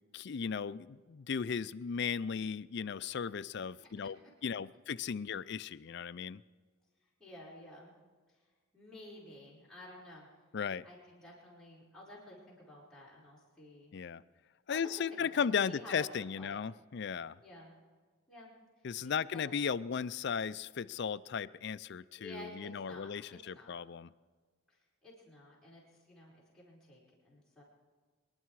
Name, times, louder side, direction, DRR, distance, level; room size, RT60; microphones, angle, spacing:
voice 1, 0.1-4.2 4.4-6.4 10.5-10.8 13.9-14.2 14.7-17.4 18.8-24.1, left 6 dB, 55° left, 15 dB, 0.4 m, -36 dB
voice 2, 7.0-8.0 8.3-10.3 10.8-13.9 14.7-16.6 17.4-17.8 18.3-18.5 18.8-19.5 22.2-23.8 24.7-27.6, left 1 dB, 5° left, -8 dB, 4.7 m, -52 dB
25.0 x 11.5 x 4.7 m, 1.5 s
head